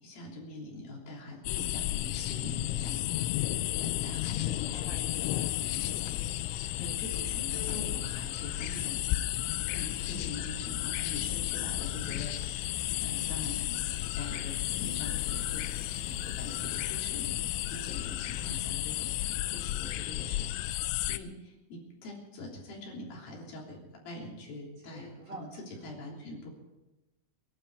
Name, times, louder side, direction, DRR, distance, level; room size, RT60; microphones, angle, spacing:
voice 1, 0.0-3.1 3.4-5.3 5.6-5.8 6.5-9.0 9.6-15.6 16.0-19.2 19.4-23.8 24.0-25.5 25.8-26.5, left 1 dB, 50° left, -2 dB, 4.7 m, -44 dB
sound 1, 1.5-21.2, left 15 dB, 90° left, 3.2 m, -33 dB
voice 2, 4.3-6.2 24.8-25.9, right 1 dB, 30° right, -1 dB, 2.4 m, -50 dB
sound 2, 5.0-7.4 11.3-20.3, right 3 dB, 85° right, 0.7 m, -60 dB
sound 3, 5.7-19.7, equal, 20° left, 5.9 m, -50 dB
23.0 x 12.0 x 4.8 m, 1.0 s
omnidirectional pair, 5.6 m